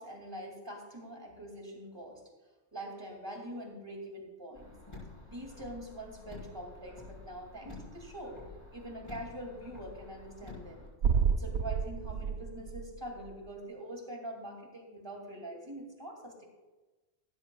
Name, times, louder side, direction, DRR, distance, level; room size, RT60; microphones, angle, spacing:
voice 1, 0.0-2.2 2.7-4.7 5.3-8.4 8.7-10.9 11.3-16.4, right 1 dB, 20° right, 1 dB, 2.5 m, -44 dB
Car, 4.5-10.9, left 3 dB, 25° left, 4.6 m, -49 dB
sound 1, 11.0-13.3, right 6 dB, 85° right, 0.9 m, -30 dB
15.5 x 13.0 x 2.3 m, 1.2 s
omnidirectional pair, 1.1 m